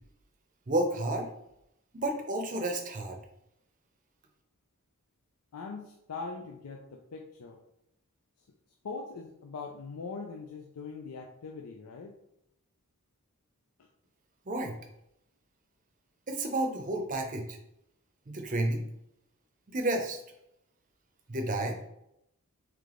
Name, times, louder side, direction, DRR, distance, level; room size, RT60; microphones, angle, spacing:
voice 1, 0.7-1.3 1.9-3.2 14.5-14.8 16.3-17.6 18.3-18.9 19.7-20.2 21.3-21.8, right 1 dB, 35° right, 4 dB, 0.6 m, -31 dB
voice 2, 5.5-7.6 8.8-12.1, left 4 dB, 85° left, 2 dB, 0.5 m, -41 dB
3.4 x 3.2 x 3.7 m, 0.79 s
head